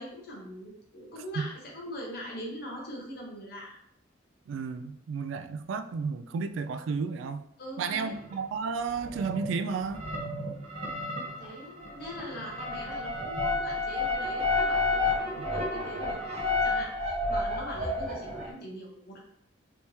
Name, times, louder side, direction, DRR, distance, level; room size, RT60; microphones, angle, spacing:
voice 1, 0.0-3.8 7.6-8.2 11.4-19.2, equal, 55° left, -2 dB, 1.0 m, -42 dB
voice 2, 4.5-7.5 7.8-10.0 15.2-15.5, right 5 dB, 80° right, 10 dB, 0.3 m, -32 dB
sound 1, 8.3-8.4 8.9-9.6 9.8-18.5, left 2 dB, 35° right, 0.7 m, -31 dB
3.3 x 3.0 x 2.8 m, 0.73 s
head